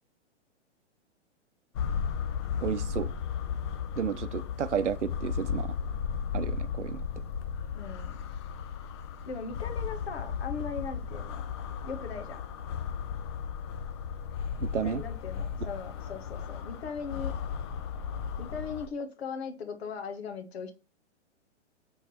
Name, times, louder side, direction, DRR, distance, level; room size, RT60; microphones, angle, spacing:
sound 1, 1.7-18.9, left 7 dB, 25° left, 0.4 m, -35 dB
voice 1, 2.6-3.1 4.0-5.7 6.3-7.0 14.6-15.0, right 8 dB, 75° right, 0.7 m, -32 dB
voice 2, 7.7-8.2 9.3-11.4 11.8-12.4 14.8-17.3 18.4-20.7, left 5 dB, 60° left, 1.4 m, -39 dB
5.9 x 3.8 x 4.2 m
figure-of-eight pair, 115°, 36 cm